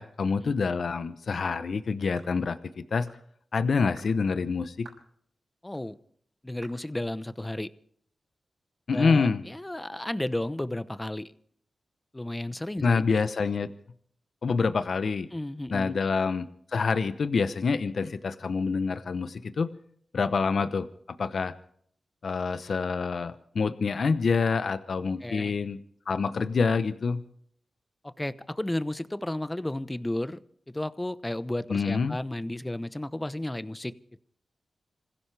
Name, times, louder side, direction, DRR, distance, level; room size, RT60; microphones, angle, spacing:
voice 1, 0.0-2.6 2.9-3.1 3.5-4.9 8.9-9.4 12.8-13.7 14.4-15.3 15.7-19.7 20.1-20.9 21.2-21.5 22.2-25.8 26.1-27.2 31.7-32.2, left 5 dB, 70° left, 11 dB, 0.9 m, -26 dB
sound 1, 2.2-2.4 3.1-3.3 4.0-4.1 4.8-5.1 5.7-5.8 6.6-6.8, right 3 dB, 80° right, 5.7 m, -51 dB
voice 2, 5.6-6.0 6.4-7.7 8.9-11.3 12.1-13.0 15.3-15.9 25.2-25.5 28.0-30.4 30.7-33.9, left 1 dB, 15° left, 14 dB, 0.9 m, -33 dB
26.5 x 16.0 x 3.4 m, 0.63 s
cardioid pair, 55°, 0 cm